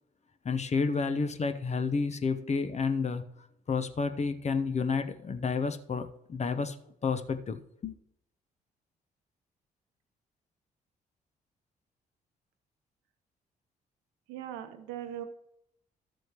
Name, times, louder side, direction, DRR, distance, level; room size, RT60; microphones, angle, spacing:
voice 1, 0.4-3.2 3.7-6.8 7.0-7.9, left 4 dB, 35° left, 0.9 m, -30 dB
voice 2, 14.3-15.2, right 10 dB, 70° right, 0.9 m, -39 dB
13.5 x 7.6 x 3.0 m
figure-of-eight pair, 40°, 20 cm